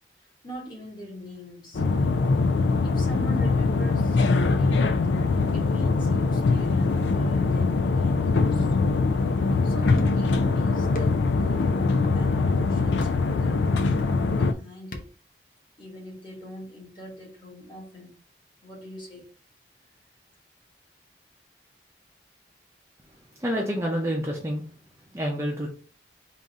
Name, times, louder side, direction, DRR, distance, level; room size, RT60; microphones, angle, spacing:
voice 1, 0.2-1.8 2.8-5.0 5.5-8.8 9.6-14.0 14.3-15.1 15.8-18.2 18.6-19.3, equal, 25° left, 1.4 m, -42 dB
sound 1, 1.7-14.5, left 3 dB, 90° left, 0.4 m, -22 dB
sound 2, 10.0-10.3 10.9-11.3 12.0-12.2 13.0-13.3 14.0-14.4 14.9-15.3, equal, 50° left, 0.7 m, -38 dB
voice 2, 23.1-24.7 25.1-25.7, equal, 15° right, 0.6 m, -28 dB
3.7 x 2.6 x 4.0 m
head